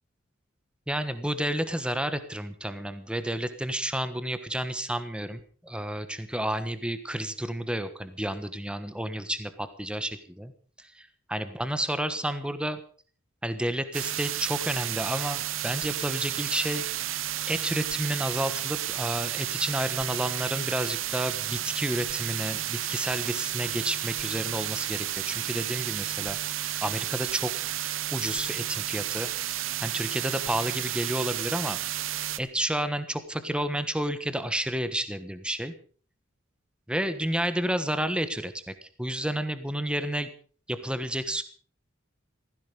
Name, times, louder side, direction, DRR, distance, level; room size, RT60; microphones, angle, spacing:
voice 1, 0.9-10.5 10.8-12.8 13.4-16.8 17.5-27.5 28.1-31.8 32.4-35.7 36.9-40.3 40.7-41.4, right 1 dB, 5° right, 11 dB, 1.2 m, -31 dB
sound 1, 13.9-32.4, right 12 dB, 75° right, 0.8 m, -32 dB
16.0 x 15.5 x 5.3 m, 0.43 s
head